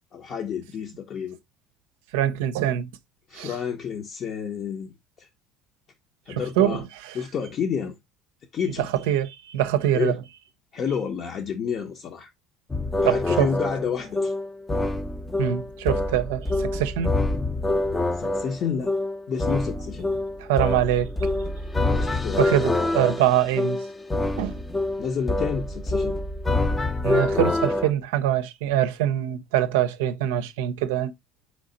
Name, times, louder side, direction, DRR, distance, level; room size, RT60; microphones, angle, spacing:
voice 1, 0.1-1.4 3.3-5.3 6.3-6.8 7.1-8.0 8.5-8.9 9.9-10.2 10.7-12.3 13.0-14.3 18.2-18.9 19.3-20.2 21.9-22.6 25.0-26.2, left 7 dB, 45° left, 0.7 m, -30 dB
voice 2, 2.1-2.9 3.3-3.5 6.3-7.2 8.8-10.2 13.0-13.5 15.4-17.1 20.4-21.3 22.4-23.8 24.4-24.6 27.0-31.1, right 11 dB, 80° right, 0.5 m, -24 dB
sound 1, 12.7-27.9, left 2 dB, 15° left, 0.5 m, -26 dB
4.1 x 3.2 x 3.8 m
supercardioid pair, 85°, 0 cm